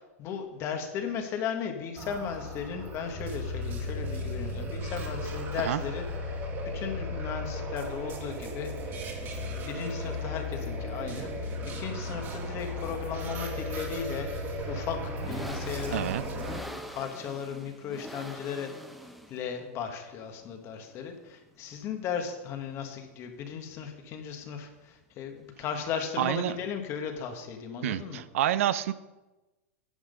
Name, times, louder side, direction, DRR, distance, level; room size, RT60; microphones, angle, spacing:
voice 1, 0.0-6.4 6.7-9.0 9.2-11.5 11.7-14.3 14.7-18.7 19.3-28.2, left 7 dB, 35° left, 5 dB, 1.4 m, -36 dB
sound 1, 2.0-16.6, left 1 dB, 30° right, 2.0 m, -35 dB
sound 2, 9.5-27.3, equal, ahead, 0.8 m, -48 dB
voice 2, 15.9-16.2 26.2-26.6 27.8-28.9, right 12 dB, 70° right, 15 dB, 0.5 m, -28 dB
10.0 x 6.3 x 5.2 m, 1.1 s
hypercardioid pair, 135°, 8 cm